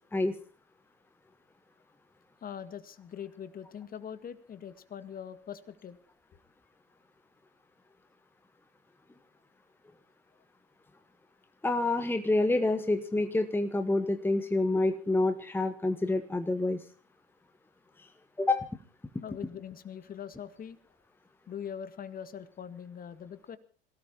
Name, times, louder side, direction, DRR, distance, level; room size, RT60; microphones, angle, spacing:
voice 1, 2.4-6.0 19.2-20.8 21.5-23.6, left 8 dB, 30° left, 13 dB, 1.9 m, -42 dB
voice 2, 11.6-16.8 18.0-18.1 18.4-18.7, left 2 dB, 5° left, 9 dB, 1.3 m, -27 dB
27.0 x 18.0 x 2.9 m, 0.38 s
figure-of-eight pair, 75°, 31 cm